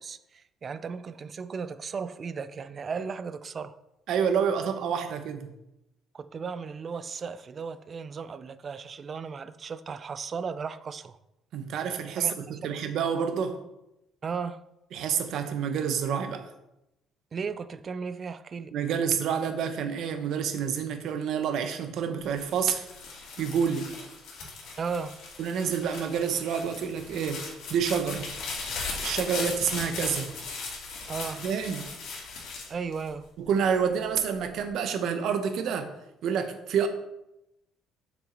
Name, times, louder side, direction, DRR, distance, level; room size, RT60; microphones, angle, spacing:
voice 1, 0.0-3.7 6.1-11.2 12.2-12.3 14.2-14.6 17.3-18.8 24.8-25.2 31.1-31.5 32.7-33.3, right 5 dB, 30° right, 0.4 m, -35 dB
voice 2, 4.1-5.5 11.5-13.6 14.9-16.5 18.7-22.9 23.4-23.9 25.4-28.3 29.0-30.3 31.4-31.9 33.4-35.9 36.2-36.9, right 7 dB, 60° right, 0.9 m, -28 dB
sound 1, 22.2-33.6 34.1-34.7, left 4 dB, 70° left, 2.5 m, -38 dB
7.3 x 6.0 x 3.9 m
cardioid pair, 150°, 0 cm